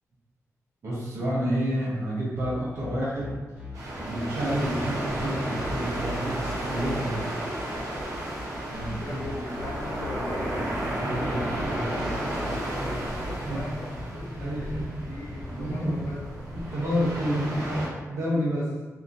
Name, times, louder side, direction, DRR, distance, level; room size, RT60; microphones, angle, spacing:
voice 1, 0.8-3.4 4.0-7.3 8.7-9.4 10.8-12.1 13.4-13.6 14.4-15.0 15.5-16.1 16.6-18.7, equal, 60° right, -6 dB, 0.8 m, -29 dB
sound 1, 2.3-15.0, equal, 30° right, 1.4 m, -40 dB
sound 2, 3.7-17.9, right 1 dB, 85° right, 0.9 m, -33 dB
voice 2, 9.0-10.7 11.3-16.3, left 1 dB, 50° left, -2 dB, 0.5 m, -40 dB
2.8 x 2.4 x 2.6 m, 1.3 s
wide cardioid pair, 165°, 6 cm